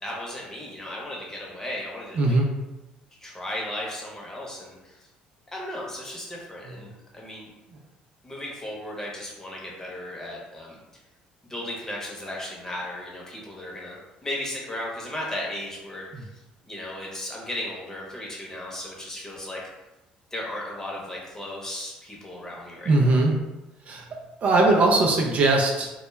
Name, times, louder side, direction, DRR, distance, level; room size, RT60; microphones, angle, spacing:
voice 1, 0.0-2.3 3.2-5.0 5.5-7.5 8.2-10.8 11.4-14.0 14.2-16.3 16.6-19.6 20.3-23.2, left 1 dB, 15° left, -3 dB, 0.8 m, -35 dB
voice 2, 2.1-2.5 6.7-6.8 7.7-7.8 16.1-16.2 22.9-23.4 23.9-24.1 24.4-25.9, right 2 dB, 45° right, 0 dB, 0.4 m, -20 dB
2.2 x 2.0 x 3.1 m, 1.0 s
supercardioid pair, 90°, 3 cm